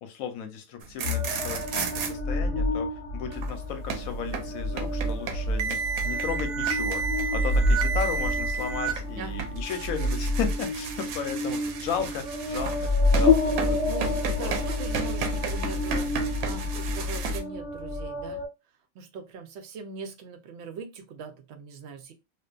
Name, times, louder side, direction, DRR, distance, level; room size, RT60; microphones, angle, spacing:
voice 1, 0.0-2.9 3.1-7.0 7.3-13.8 14.4-14.6, left 7 dB, 85° left, 7 dB, 1.1 m, -35 dB
sound 1, 0.8-2.1 3.3-17.4, right 2 dB, 90° right, 1.0 m, -31 dB
sound 2, 1.0-18.5, left 1 dB, 60° left, 0.9 m, -29 dB
voice 2, 13.9-18.4 18.9-22.1, right 5 dB, 65° right, 7 dB, 0.7 m, -41 dB
2.6 x 2.4 x 2.3 m, 0.26 s
omnidirectional pair, 1.4 m